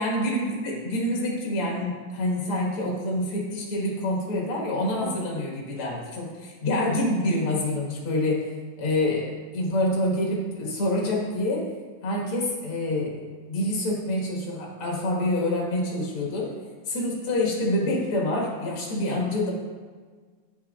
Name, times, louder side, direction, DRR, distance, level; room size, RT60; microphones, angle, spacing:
voice 1, 0.0-8.5 8.8-11.7 12.0-13.1 13.5-16.5 16.9-19.5, left 1 dB, 50° left, -2 dB, 2.1 m, -26 dB
8.8 x 7.9 x 2.4 m, 1.5 s
omnidirectional pair, 3.7 m